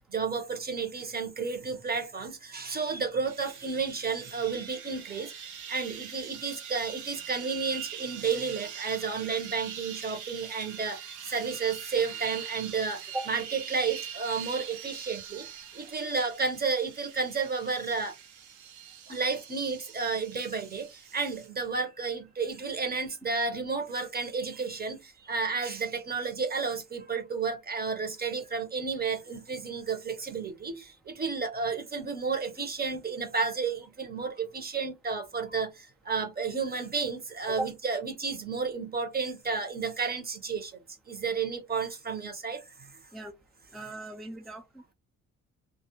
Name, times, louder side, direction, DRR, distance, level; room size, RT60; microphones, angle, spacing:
voice 1, 0.1-5.3 5.7-11.0 11.3-13.0 13.3-15.4 15.8-18.1 19.1-20.9 21.1-25.0 25.3-35.7 36.1-40.7 41.1-42.6, right 5 dB, 30° right, 0.9 m, -32 dB
sound 1, 3.2-21.5, right 9 dB, 75° right, 0.7 m, -43 dB
voice 2, 43.7-44.9, right 1 dB, ahead, 0.4 m, -37 dB
2.4 x 2.0 x 2.9 m
cardioid pair, 90°, 30 cm